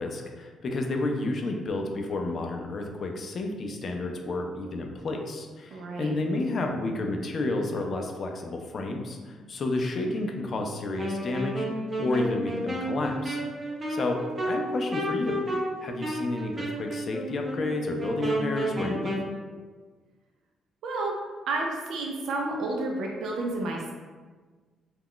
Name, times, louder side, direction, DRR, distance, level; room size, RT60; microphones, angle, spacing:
voice 1, 0.0-11.7 12.0-13.4 13.9-15.4 15.8-19.2, left 2 dB, 50° left, 3 dB, 0.4 m, -31 dB
voice 2, 5.7-6.1 20.8-21.1 21.5-23.9, right 2 dB, 75° right, 0 dB, 0.4 m, -30 dB
Wind instrument woodwind instrument, 11.0-19.3, right 1 dB, 25° right, 0.6 m, -32 dB
2.3 x 2.1 x 3.6 m, 1.4 s
cardioid pair, 90°, 0 cm